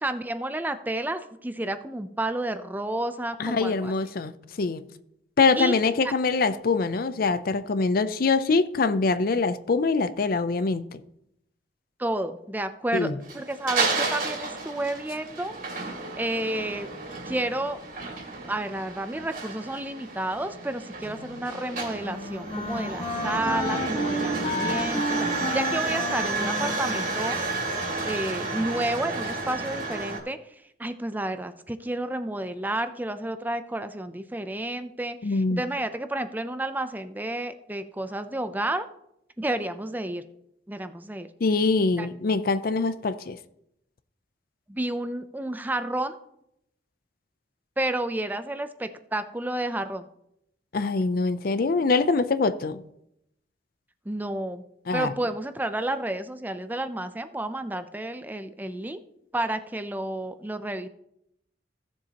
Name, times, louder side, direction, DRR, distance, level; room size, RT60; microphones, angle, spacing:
voice 1, 0.0-3.9 5.6-6.1 12.0-15.6 16.1-16.9 17.3-17.8 18.5-27.4 28.0-30.4 30.8-38.9 39.4-40.2 40.7-41.3 42.0-42.1 44.7-46.2 47.8-50.1 54.1-54.6 54.9-59.0 59.3-60.9, right 1 dB, 10° right, 0.5 m, -31 dB
voice 2, 3.4-4.8 5.4-11.0 12.9-13.2 35.2-35.6 41.4-43.4 50.7-52.8 54.9-55.1, left 4 dB, 55° left, 0.5 m, -24 dB
sound 1, 13.2-30.2, right 3 dB, 50° right, 2.5 m, -31 dB
Wind instrument woodwind instrument, 21.0-28.2, left 1 dB, 35° left, 1.1 m, -33 dB
16.0 x 7.2 x 2.9 m
head